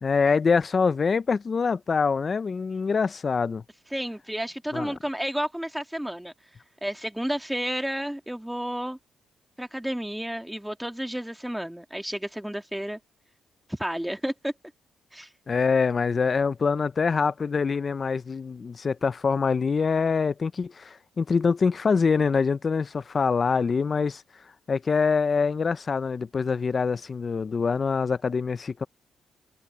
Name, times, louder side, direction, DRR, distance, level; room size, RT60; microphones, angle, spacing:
voice 1, 0.0-3.6 4.7-4.9 15.5-24.2 24.7-28.8, left 5 dB, 45° left, 0.6 m, -24 dB
voice 2, 3.9-6.3 6.8-9.0 9.6-13.0 13.7-14.5 15.1-15.3, equal, 5° right, 2.1 m, -31 dB
cardioid pair, 70°, 0 cm